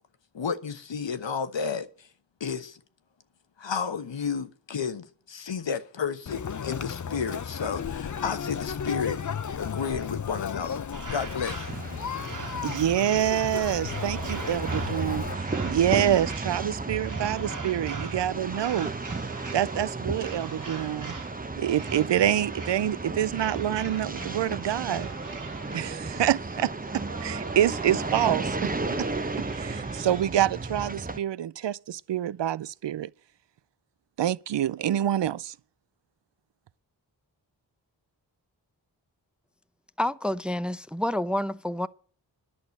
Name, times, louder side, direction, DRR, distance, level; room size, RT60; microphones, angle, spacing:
voice 1, 0.3-2.1 2.4-2.8 3.6-9.2 9.6-10.8 11.1-11.8, left 6 dB, 75° left, 1.3 m, -32 dB
Conversation, 6.3-15.3, left 7 dB, 40° left, 0.7 m, -34 dB
sound 1, 10.9-30.2, right 4 dB, 45° right, 1.9 m, -42 dB
sound 2, 11.7-31.2, right 3 dB, 20° right, 0.9 m, -34 dB
voice 2, 12.6-15.3 15.6-18.9 19.5-21.1 21.6-25.1 25.7-29.1 29.4-33.1 34.2-35.5, right 11 dB, 70° right, 0.5 m, -27 dB
voice 3, 40.0-41.9, left 1 dB, ahead, 0.6 m, -28 dB
11.0 x 6.2 x 8.3 m
cardioid pair, 45°, 44 cm